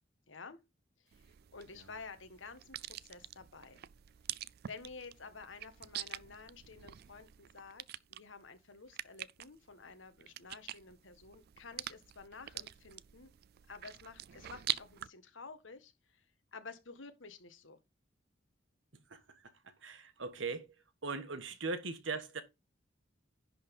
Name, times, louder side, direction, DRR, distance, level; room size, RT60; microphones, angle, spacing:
voice 1, 0.3-0.6 1.1-1.2 1.5-3.8 4.7-7.8 8.1-13.3 13.7-16.2 16.5-17.8, left 4 dB, 85° left, 1.5 m, -51 dB
sound 1, 1.1-15.1, right 13 dB, 55° right, 0.3 m, -45 dB
voice 2, 19.1-20.7 21.0-22.4, right 4 dB, 80° right, 1.3 m, -40 dB
10.5 x 4.0 x 5.3 m
head